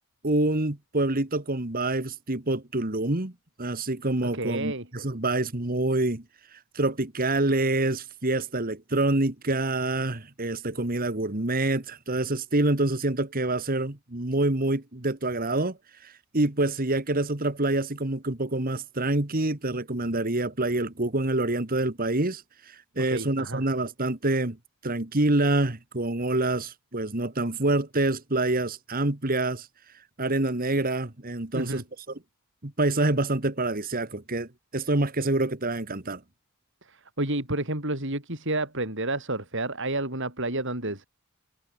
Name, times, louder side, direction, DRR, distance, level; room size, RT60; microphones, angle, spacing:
voice 1, 0.2-3.3 3.6-6.2 6.7-15.8 16.0-22.4 23.0-24.6 24.8-29.7 30.2-31.8 32.6-36.2, right 2 dB, 40° right, 1.9 m, -26 dB
voice 2, 4.2-4.9 23.1-23.7 31.5-31.8 36.8-41.1, right 2 dB, 55° right, 7.1 m, -30 dB
head